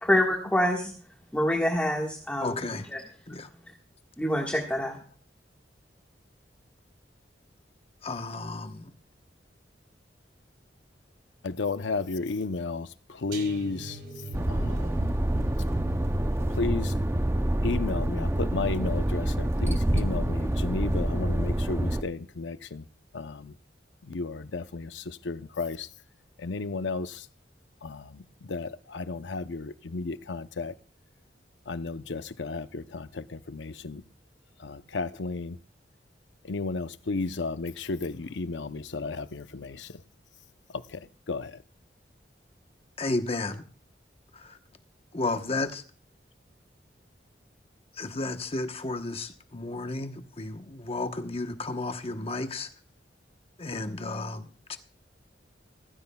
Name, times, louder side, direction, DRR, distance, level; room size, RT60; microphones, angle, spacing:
voice 1, 0.0-0.9 1.3-2.6 2.9-3.0 4.2-5.0, left 1 dB, 10° left, 1.5 m, -26 dB
voice 2, 2.4-2.9 3.3-3.5 8.0-8.9 43.0-43.6 44.3-44.6 45.1-45.8 48.0-52.7 53.6-54.8, left 2 dB, 35° left, 1.0 m, -33 dB
voice 3, 11.4-12.9 13.2-14.0 14.5-14.9 16.6-16.9 17.6-22.8 23.1-23.5 24.1-25.9 26.4-27.2 27.8-28.2 28.5-30.7 31.7-34.0 34.6-35.6 36.5-39.9 41.3-41.5, left 3 dB, 80° left, 0.7 m, -33 dB
sound 1, 13.3-20.4 20.7-21.0 21.4-21.5, right 2 dB, 60° right, 2.2 m, -43 dB
sound 2, 14.3-22.0, right 1 dB, 15° right, 0.5 m, -27 dB
17.0 x 15.5 x 2.3 m
head